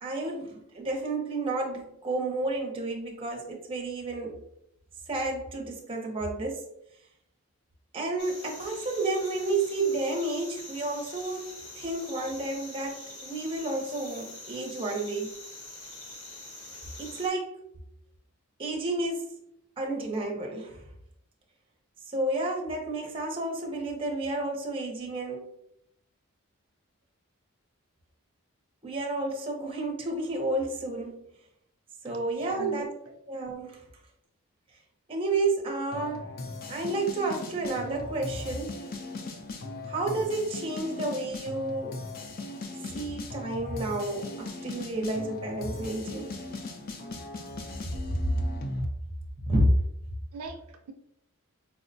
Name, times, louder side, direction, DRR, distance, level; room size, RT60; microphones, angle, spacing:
voice 1, 0.0-4.4 5.1-6.7 7.9-15.3 17.0-17.5 18.6-19.3 19.8-20.8 22.0-25.6 28.8-31.3 32.0-32.9 33.3-33.9 35.1-36.3 36.7-38.8 39.9-42.0 42.9-46.3 49.5-49.7, right 2 dB, 25° right, 1 dB, 0.5 m, -31 dB
sound 1, 8.2-17.3, left 2 dB, 75° left, 0.9 m, -44 dB
voice 2, 32.0-32.9 50.3-50.9, right 1 dB, 90° right, 5 dB, 0.5 m, -41 dB
sound 2, 35.9-48.9, left 2 dB, 40° left, 0.4 m, -39 dB
4.5 x 2.1 x 2.6 m, 0.73 s
head